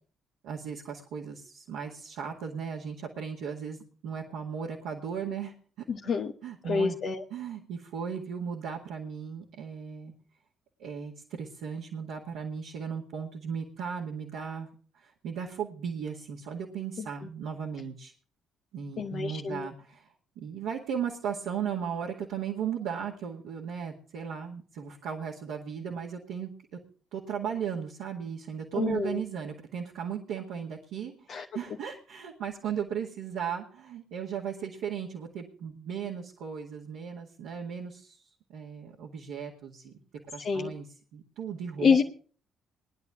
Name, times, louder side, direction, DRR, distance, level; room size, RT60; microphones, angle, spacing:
voice 1, 0.4-3.8 4.0-5.5 6.0-6.1 6.4-7.0 7.3-10.1 10.8-14.7 14.9-18.1 18.7-26.8 27.1-40.0 40.3-42.0, right 7 dB, 65° right, -2 dB, 2.0 m, -36 dB
voice 2, 5.9-6.3 6.6-7.2 19.0-19.7 28.7-29.2 31.3-31.4 40.4-40.7 41.8-42.0, left 5 dB, 50° left, 2 dB, 1.0 m, -27 dB
20.5 x 11.0 x 3.7 m, 0.42 s
figure-of-eight pair, 45°, 0 cm